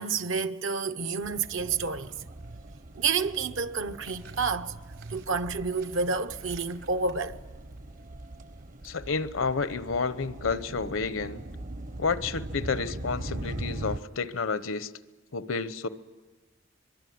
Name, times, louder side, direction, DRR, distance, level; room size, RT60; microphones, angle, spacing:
voice 1, 0.0-2.2 2.4-2.6 3.0-7.4, right 5 dB, 70° right, 0.8 m, -30 dB
sound 1, 1.1-13.2, right 3 dB, 90° right, 5.7 m, -59 dB
sound 2, 1.2-14.0, right 1 dB, 40° right, 0.8 m, -41 dB
voice 2, 8.8-11.4 12.0-14.9 15.3-15.9, left 4 dB, 80° left, 0.9 m, -30 dB
24.0 x 23.0 x 9.5 m
head